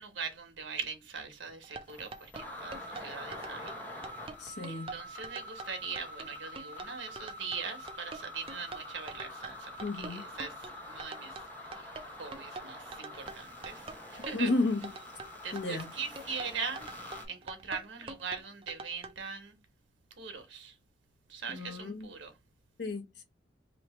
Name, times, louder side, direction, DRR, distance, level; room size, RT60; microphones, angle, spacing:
voice 1, 0.0-3.8 4.7-11.4 11.7-11.9 12.2-14.5 15.4-16.9 17.3-19.6 20.2-20.7 21.3-22.4, right 5 dB, 85° right, 1.1 m, -41 dB
sound 1, 1.5-1.6 1.8-17.2, left 1 dB, 10° left, 1.0 m, -46 dB
sound 2, 1.6-19.1, right 3 dB, 30° right, 0.5 m, -45 dB
voice 2, 4.4-5.0 9.8-10.2 14.3-14.9 15.5-15.9 21.5-22.1 22.8-23.2, left 2 dB, 65° left, 0.9 m, -33 dB
3.1 x 2.8 x 4.3 m
head